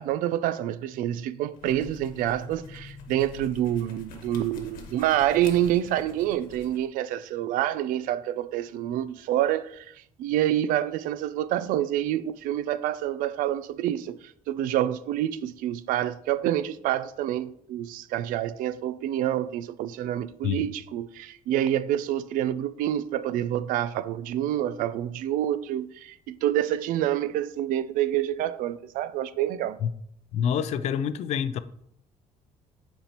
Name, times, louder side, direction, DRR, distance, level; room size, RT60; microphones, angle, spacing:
voice 1, 0.0-9.9 10.2-29.8, right 12 dB, 80° right, 0.4 m, -27 dB
sound 1, 1.5-6.9, left 4 dB, 90° left, 1.3 m, -45 dB
voice 2, 30.3-31.6, left 8 dB, 55° left, 0.4 m, -27 dB
8.5 x 4.3 x 2.9 m
cardioid pair, 170°, 14 cm